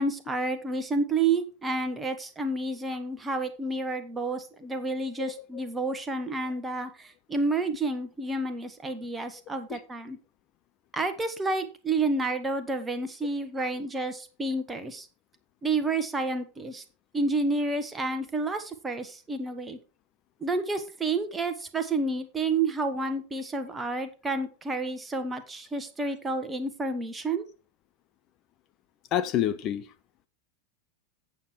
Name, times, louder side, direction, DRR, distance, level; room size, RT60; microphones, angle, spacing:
voice 1, 0.0-10.2 10.9-15.1 15.6-16.8 17.1-19.8 20.4-27.4, right 3 dB, 15° right, 1.2 m, -30 dB
voice 2, 29.1-29.8, left 11 dB, 35° left, 0.6 m, -27 dB
8.5 x 7.2 x 4.6 m
figure-of-eight pair, 90°, 0 cm